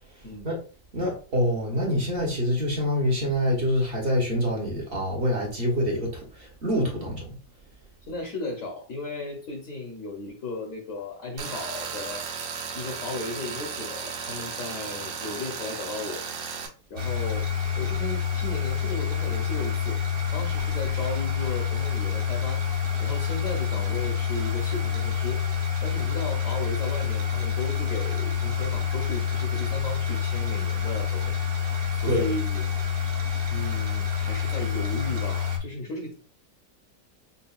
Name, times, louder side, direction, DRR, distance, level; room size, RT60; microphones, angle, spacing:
voice 1, 0.9-7.3 32.1-32.3, equal, 40° right, 1.0 m, -26 dB
voice 2, 8.1-12.2 12.7-16.2 16.9-20.0 20.3-22.6 23.0-25.4 25.8-31.3 32.0-32.7 33.5-36.1, left 2 dB, 50° left, 1.2 m, -35 dB
Tools, 11.4-16.7, right 6 dB, 90° right, 1.5 m, -35 dB
sound 1, 17.0-35.6, left 7 dB, 55° right, 0.6 m, -27 dB
5.5 x 2.5 x 2.4 m
omnidirectional pair, 1.9 m